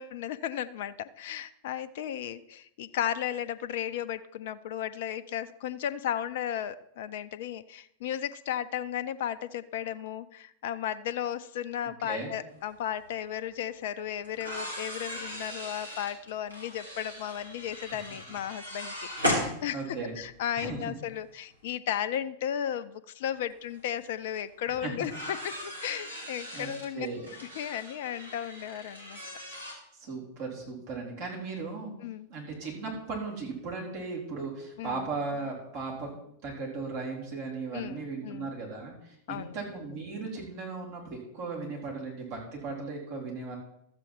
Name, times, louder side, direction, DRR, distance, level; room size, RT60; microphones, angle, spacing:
voice 1, 0.0-27.1 27.6-29.2 32.0-32.3 34.8-35.0 37.7-38.5 39.3-39.6, left 10 dB, 55° left, 13 dB, 0.5 m, -35 dB
voice 2, 12.0-12.3 19.7-20.1 20.6-20.9 24.7-24.9 26.5-27.3 30.0-31.9 32.3-36.1 36.4-43.6, right 4 dB, 50° right, -2 dB, 3.9 m, -37 dB
sound 1, 13.0-13.1 14.2-20.2 21.5-21.6 23.4-23.5 23.8-23.9 25.0-29.7, left 1 dB, 85° right, 2.4 m, -37 dB
13.0 x 7.8 x 4.5 m, 0.75 s
figure-of-eight pair, 90°, 0 cm